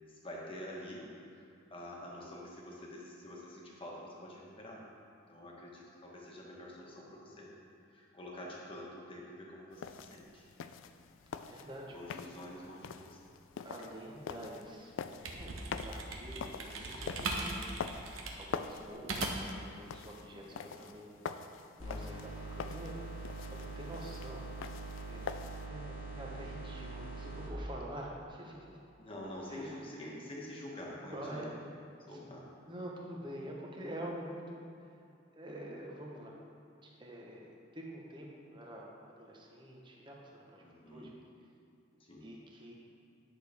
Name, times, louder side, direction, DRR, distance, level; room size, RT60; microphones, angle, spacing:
voice 1, 0.2-1.1 1.3-4.8 5.3-7.5 7.9-10.4 11.9-13.2 20.1-20.6 29.0-31.5 32.1-32.4 40.6-41.1 42.1-42.3, left 1 dB, 25° left, -3 dB, 1.3 m, -47 dB
sound 1, 9.7-25.7, left 6 dB, 70° left, 0.3 m, -45 dB
voice 2, 11.4-12.0 13.6-14.9 15.3-17.7 18.4-21.1 21.8-23.1 23.5-24.5 25.1-25.2 25.7-28.8 29.5-29.8 31.0-31.6 32.0-32.3 32.7-34.9 35.3-36.3 36.8-38.9 39.2-41.1 42.2-42.7, right 1 dB, 25° right, -2 dB, 1.0 m, -46 dB
sound 2, 14.9-19.6, right 2 dB, 85° right, 1.0 m, -39 dB
sound 3, 21.8-27.5, right 2 dB, 85° left, 1.6 m, -43 dB
10.0 x 6.4 x 3.5 m, 2.5 s
head